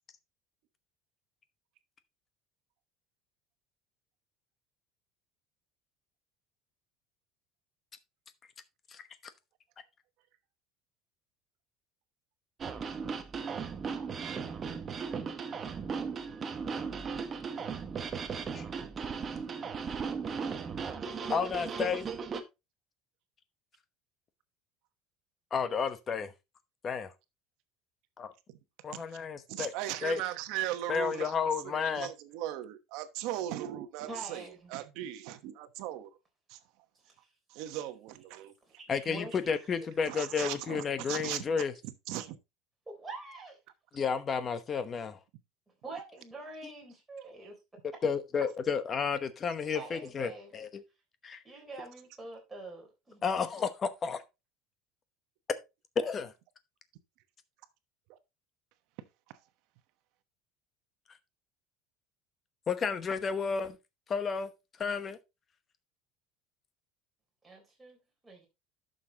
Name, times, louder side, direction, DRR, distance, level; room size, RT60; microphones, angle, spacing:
sound 1, 12.6-22.4, right 5 dB, 25° right, 1.0 m, -37 dB
voice 1, 21.3-22.1 25.5-26.3 26.8-27.1 28.2-28.3 28.8-29.7 30.0-30.2 30.9-32.1 38.9-41.7 43.9-45.2 48.0-50.8 51.2-51.4 53.2-54.2 56.0-56.3 62.7-63.8 64.1-64.5 64.8-65.2, left 6 dB, 25° left, 0.9 m, -31 dB
voice 2, 29.5-31.3 31.6-36.2 36.5-36.6 37.5-38.5 38.9-39.0 40.0-42.4 58.1-58.2, right 13 dB, 65° right, 1.1 m, -38 dB
voice 3, 34.1-34.7 37.1-37.2 38.7-39.6 42.9-43.6 45.8-47.6 47.9-48.0 49.7-50.7 51.4-53.2 67.4-68.0 68.2-68.5, right 3 dB, 10° right, 3.7 m, -45 dB
11.5 x 6.6 x 2.9 m
cardioid pair, 155°, 0 cm